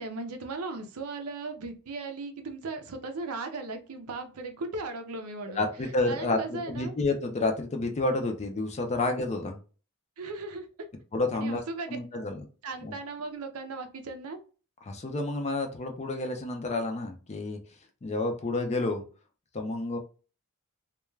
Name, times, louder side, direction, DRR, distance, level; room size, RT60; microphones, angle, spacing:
voice 1, 0.0-5.6 6.1-6.9 10.2-10.9 11.3-12.2 12.6-14.4, right 3 dB, 70° right, 6 dB, 0.5 m, -37 dB
voice 2, 5.6-9.6 11.1-11.6 11.9-12.4 12.8-13.0 14.9-17.6 18.0-19.0 19.5-20.0, left 2 dB, 30° left, 5 dB, 0.5 m, -30 dB
2.3 x 2.2 x 3.1 m, 0.36 s
head